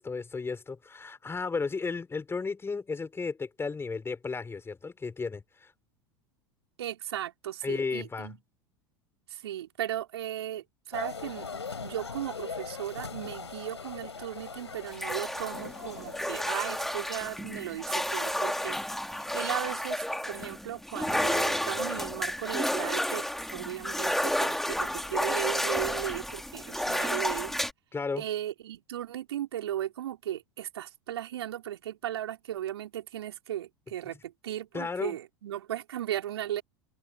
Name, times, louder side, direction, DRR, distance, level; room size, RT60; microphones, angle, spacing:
voice 1, 0.0-5.7 7.6-8.3 27.9-28.2 34.7-35.2, left 4 dB, 15° left, 5.8 m, -34 dB
voice 2, 6.8-8.4 9.3-18.8 19.2-27.6 28.2-36.6, right 12 dB, 70° right, 4.4 m, -36 dB
sound 1, 10.9-16.9, left 5 dB, 85° left, 6.3 m, -40 dB
sound 2, 14.9-27.7, equal, ahead, 3.0 m, -31 dB
figure-of-eight pair, 80°, 14 cm